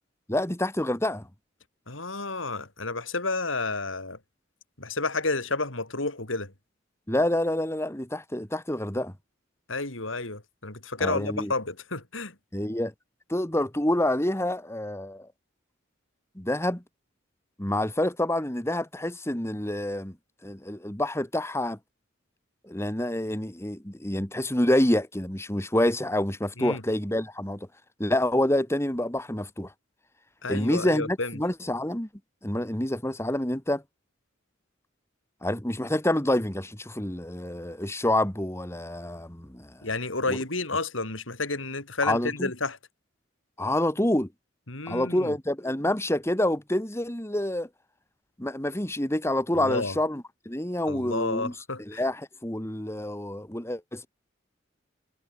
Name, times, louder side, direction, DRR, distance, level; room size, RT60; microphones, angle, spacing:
voice 1, 0.3-1.3 7.1-9.1 11.0-11.5 12.5-12.9 13.3-15.3 16.4-16.8 17.6-20.2 20.4-21.8 22.6-27.7 28.0-29.7 30.5-32.1 32.4-33.8 35.4-39.8 40.3-40.4 42.0-42.5 43.6-44.3 44.9-47.7 48.4-51.5 51.8-54.1, left 1 dB, 15° left, 2.2 m, -27 dB
voice 2, 1.9-4.2 4.8-6.5 9.7-12.3 26.6-26.8 30.4-31.4 39.8-42.8 44.7-45.3 49.5-50.0 50.9-52.0, left 3 dB, 90° left, 5.8 m, -31 dB
head